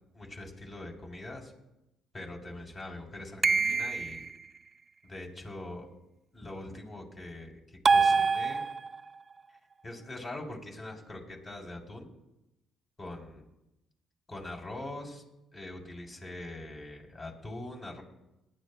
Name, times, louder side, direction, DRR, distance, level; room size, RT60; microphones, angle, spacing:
voice 1, 0.1-1.5 2.1-4.2 5.0-5.9 6.3-8.6 9.8-12.1 13.0-13.4 14.3-15.2 15.5-18.0, left 1 dB, 35° left, 1 dB, 3.5 m, -42 dB
sound 1, 3.4-4.3 7.8-9.1, right 4 dB, 35° right, 0.4 m, -25 dB
21.0 x 11.0 x 2.2 m, 0.93 s
supercardioid pair, 70°, 0 cm